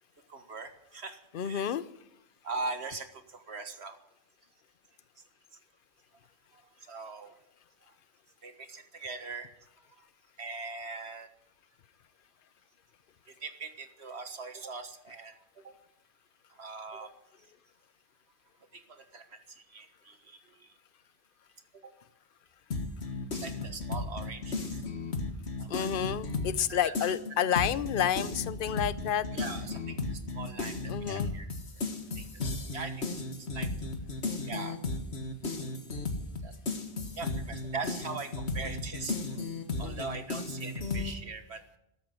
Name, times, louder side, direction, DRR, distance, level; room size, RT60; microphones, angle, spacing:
voice 1, 0.3-1.7 2.4-4.0 6.5-7.4 8.4-9.5 10.4-11.3 13.3-15.3 15.6-15.7 16.5-17.1 18.7-20.7 21.8-21.9 23.3-24.7 25.6-26.0 26.7-26.9 27.6-27.7 29.3-31.5 32.2-32.3 32.7-33.9 34.4-34.8 36.4-36.5 37.2-39.4 39.8-41.6, right 4 dB, 75° right, 8 dB, 1.8 m, -41 dB
voice 2, 1.3-1.8 25.7-29.3 30.9-31.3 39.8-40.2, left 9 dB, 55° left, 15 dB, 0.9 m, -30 dB
sound 1, 22.7-26.7 26.9-41.1, left 3 dB, 75° left, 1.9 m, -35 dB
13.5 x 13.0 x 7.8 m, 0.80 s
omnidirectional pair, 1.1 m